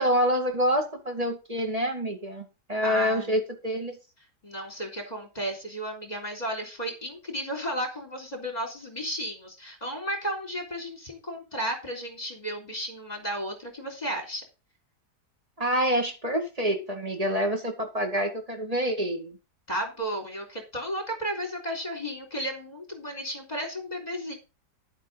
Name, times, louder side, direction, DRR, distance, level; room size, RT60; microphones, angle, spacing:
voice 1, 0.0-4.0 15.6-19.4, equal, 20° right, 4 dB, 2.1 m, -27 dB
voice 2, 2.8-3.4 4.4-14.4 19.7-24.3, equal, 25° left, 3 dB, 3.6 m, -33 dB
10.5 x 8.1 x 3.9 m, 0.29 s
omnidirectional pair, 1.7 m